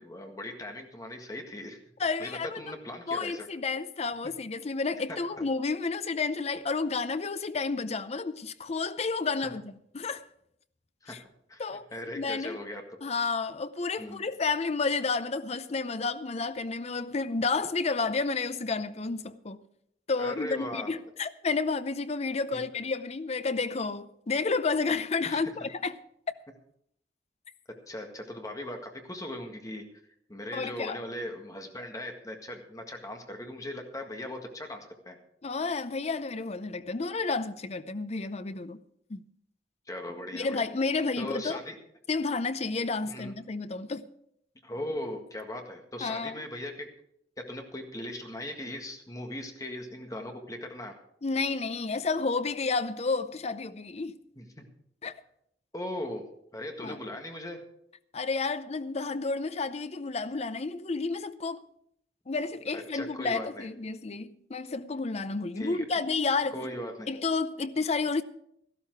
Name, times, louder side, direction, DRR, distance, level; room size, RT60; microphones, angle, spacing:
voice 1, 0.0-1.8 2.2-3.5 5.1-5.4 11.0-11.2 11.5-11.6 11.9-13.0 14.0-14.3 20.2-20.9 22.5-22.6 25.2-25.4 27.9-29.8 30.3-35.2 39.9-40.6 41.2-41.8 43.0-43.3 44.6-46.9 47.5-50.9 54.3-54.6 55.7-56.2 56.5-57.6 62.7-63.7 65.6-65.8 66.5-67.1, left 1 dB, 20° left, 1.7 m, -39 dB
voice 2, 2.0-2.6 3.1-10.3 11.1-11.2 11.6-11.9 12.1-12.6 13.0-19.6 20.1-26.0 30.5-31.0 35.4-38.8 39.1-39.2 40.3-41.6 42.1-44.1 46.0-46.4 51.2-54.2 55.0-55.1 56.8-57.0 58.1-61.6 62.3-66.5 67.1-68.2, left 4 dB, 40° left, 0.6 m, -31 dB
13.5 x 12.5 x 4.6 m
head